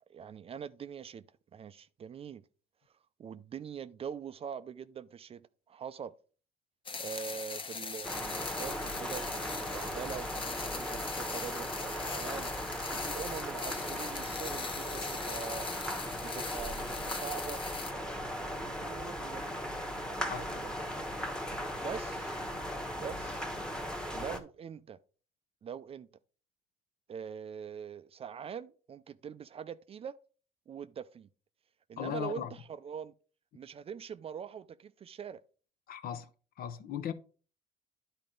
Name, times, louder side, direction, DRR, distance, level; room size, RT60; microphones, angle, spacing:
voice 1, 0.1-1.3 1.5-2.5 3.2-6.1 7.0-12.5 12.9-15.7 16.1-17.6 18.2-19.5 19.9-20.7 21.8-22.4 22.9-23.4 24.1-25.0 25.6-26.1 27.1-30.2 30.7-31.3 31.9-33.1 33.5-35.4, right 7 dB, 35° right, 0.4 m, -43 dB
sound 1, 6.9-17.9, left 4 dB, 30° left, 0.9 m, -41 dB
sound 2, 8.0-24.4, equal, 5° left, 1.1 m, -38 dB
voice 2, 32.0-32.5 35.9-36.3 36.6-37.1, left 9 dB, 60° left, 0.8 m, -37 dB
10.5 x 4.3 x 3.8 m
cardioid pair, 110°, 17 cm